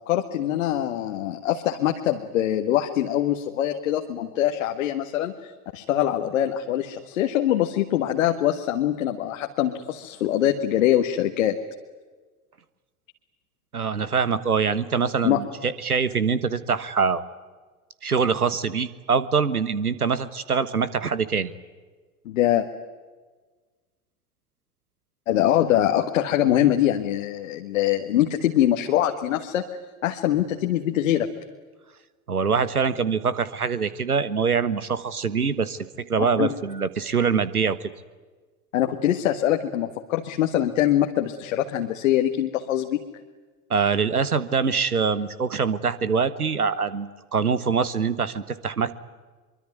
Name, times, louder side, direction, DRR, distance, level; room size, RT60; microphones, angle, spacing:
voice 1, 0.1-11.6 15.2-15.4 22.3-22.7 25.3-29.7 30.0-31.3 36.4-36.5 38.7-43.0, left 12 dB, 60° left, 4 dB, 1.8 m, -23 dB
voice 2, 13.7-17.2 18.0-21.5 32.3-37.9 43.7-48.9, right 5 dB, 80° right, 15 dB, 1.4 m, -24 dB
24.0 x 24.0 x 9.5 m, 1.3 s
figure-of-eight pair, 80°, 44 cm